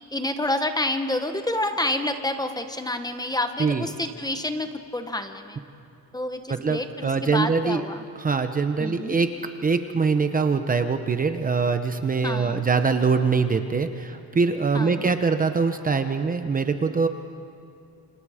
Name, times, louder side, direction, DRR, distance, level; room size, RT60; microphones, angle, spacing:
voice 1, 0.1-5.6 6.1-8.0 8.8-9.2 12.2-12.6 14.7-15.1, left 1 dB, 10° left, 7 dB, 1.0 m, -28 dB
voice 2, 6.5-7.8 8.2-9.3 9.6-17.1, right 5 dB, 25° right, 8 dB, 0.8 m, -23 dB
29.5 x 27.0 x 5.0 m, 2.6 s
cardioid pair, 165°, 36 cm